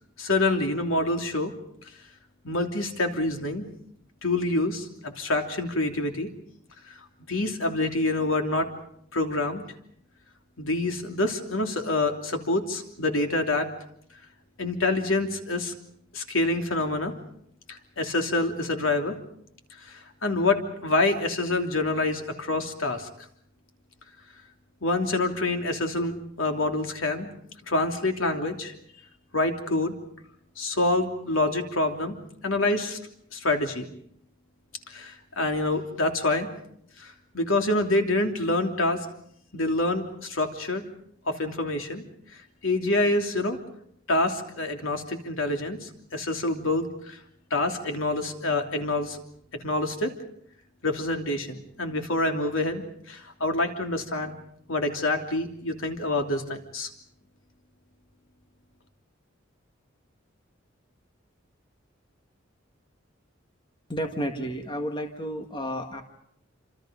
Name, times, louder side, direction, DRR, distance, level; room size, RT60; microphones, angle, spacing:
voice 1, 0.2-1.5 2.4-3.6 4.2-6.3 6.9-7.0 7.3-8.7 9.1-9.6 10.6-13.7 14.6-15.7 16.1-17.1 17.7-19.1 19.8-23.1 24.8-27.3 27.7-28.7 29.3-29.9 30.6-32.2 32.4-33.0 33.3-33.9 34.9-36.5 37.0-39.0 39.5-40.8 41.3-42.0 42.6-43.6 44.1-47.2 47.5-49.2 49.6-50.1 50.8-54.3 54.7-56.9, left 2 dB, 85° left, 4 dB, 3.1 m, -26 dB
voice 2, 63.9-66.0, equal, 25° left, 5 dB, 1.9 m, -31 dB
28.0 x 27.0 x 5.2 m, 0.70 s
head